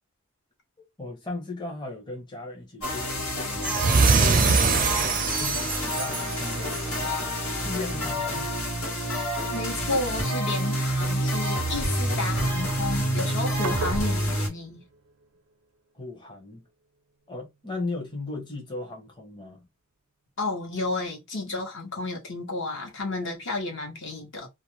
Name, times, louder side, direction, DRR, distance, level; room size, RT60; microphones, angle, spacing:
voice 1, 1.0-3.8 4.0-7.2 7.6-8.5 15.9-16.6 17.3-19.7, left 2 dB, 20° left, 0.7 m, -37 dB
sound 1, 2.8-14.5, equal, 90° left, 1.4 m, -28 dB
sound 2, 3.6-6.9, right 4 dB, 40° right, 0.5 m, -23 dB
voice 2, 9.5-14.9 20.4-24.5, left 2 dB, 60° left, 1.0 m, -32 dB
sound 3, 13.6-15.7, right 3 dB, 85° right, 0.6 m, -37 dB
2.4 x 2.2 x 3.1 m
head